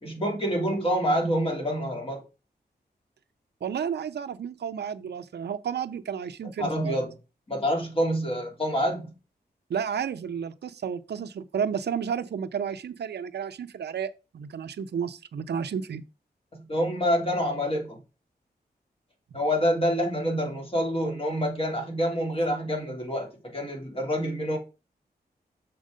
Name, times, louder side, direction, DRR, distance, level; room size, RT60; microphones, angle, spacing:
voice 1, 0.0-2.2 6.6-7.1 7.5-9.1 16.5-18.0 19.3-24.6, equal, 35° left, 2.9 m, -27 dB
voice 2, 3.6-6.9 9.7-16.0, right 7 dB, 85° right, 0.5 m, -32 dB
6.5 x 4.4 x 5.1 m
wide cardioid pair, 85°, 17 cm